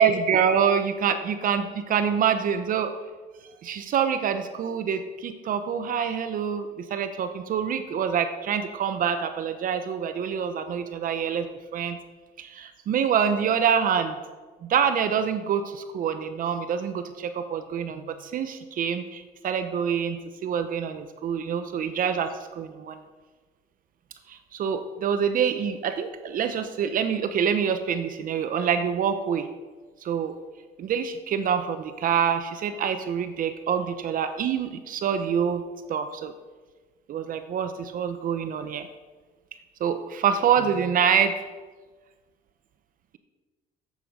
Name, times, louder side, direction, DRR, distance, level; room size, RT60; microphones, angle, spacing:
voice 1, 0.0-2.9 3.6-11.5 11.7-12.0 12.4-14.2 14.6-23.0 24.3-29.5 30.0-30.3 30.8-35.6 35.9-36.3 37.1-38.9 39.8-41.4, right 7 dB, 55° right, 9 dB, 0.8 m, -26 dB
8.4 x 8.3 x 6.3 m, 1.3 s
cardioid pair, 110°, 17 cm